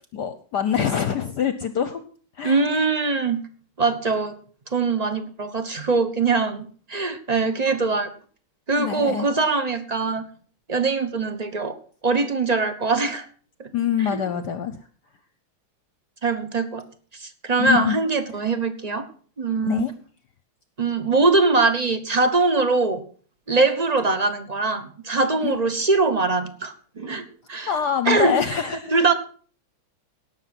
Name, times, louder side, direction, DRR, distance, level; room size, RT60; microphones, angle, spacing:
voice 1, 0.1-2.0 2.4-2.6 8.7-9.3 13.7-14.9 17.6-18.0 18.3-18.4 19.6-19.9 25.4-25.6 27.7-28.9, left 8 dB, 60° left, 11 dB, 1.2 m, -25 dB
voice 2, 2.4-3.4 3.8-4.4 4.7-8.1 8.7-10.3 10.7-11.8 12.0-13.3 13.6-13.7 14.1-14.2 16.2-16.8 17.1-19.1 19.4-19.8 20.8-23.0 23.5-27.7 28.0-28.4 28.9-29.1, right 3 dB, 30° right, 10 dB, 0.7 m, -22 dB
17.5 x 7.0 x 6.0 m, 0.43 s
omnidirectional pair, 2.4 m